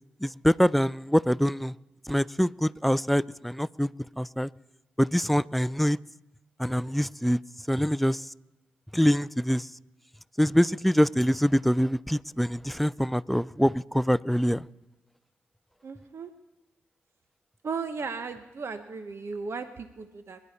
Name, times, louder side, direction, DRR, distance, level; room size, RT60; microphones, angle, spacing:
voice 1, 0.2-1.7 2.1-3.9 4.2-4.5 5.0-6.0 6.6-7.4 7.7-8.2 8.9-9.7 10.4-14.7, equal, ahead, 0.4 m, -24 dB
voice 2, 15.8-16.3 17.6-20.4, right 5 dB, 55° right, 1.0 m, -36 dB
24.0 x 11.0 x 4.2 m
hypercardioid pair, 40°, 5 cm